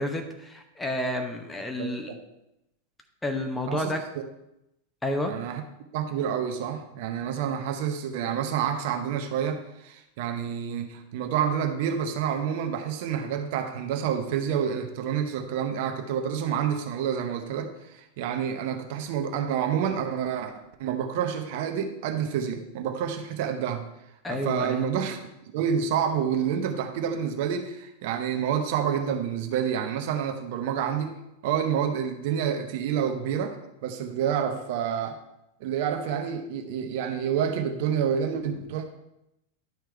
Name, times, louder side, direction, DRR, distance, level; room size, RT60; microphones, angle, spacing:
voice 1, 0.0-2.1 3.2-4.0 5.0-5.3 24.2-24.9, left 1 dB, 10° left, 4 dB, 1.0 m, -30 dB
voice 2, 1.8-2.2 3.7-3.9 5.2-5.6 5.9-20.5 20.8-23.8 24.3-25.2 25.5-31.1 31.4-33.6 33.8-35.2 35.6-38.9, right 8 dB, 50° right, 5 dB, 0.8 m, -28 dB
11.0 x 4.6 x 4.5 m, 0.86 s
figure-of-eight pair, 90°, 0 cm